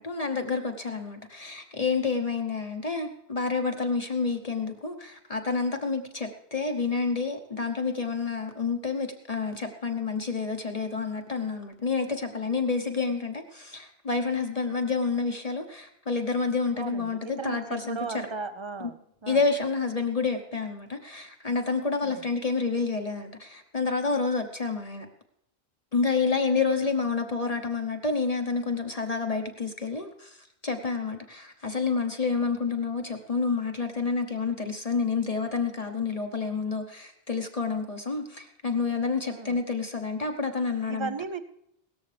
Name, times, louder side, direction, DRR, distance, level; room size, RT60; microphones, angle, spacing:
voice 1, 0.0-18.3 18.8-18.9 19.3-25.1 25.9-30.4 30.6-41.1, left 4 dB, 40° left, 5 dB, 1.0 m, -29 dB
voice 2, 16.8-19.0 19.2-19.4 22.0-22.2 39.2-39.6 40.9-41.4, right 5 dB, 30° right, 11 dB, 0.6 m, -36 dB
17.5 x 13.5 x 3.3 m, 0.77 s
omnidirectional pair, 1.1 m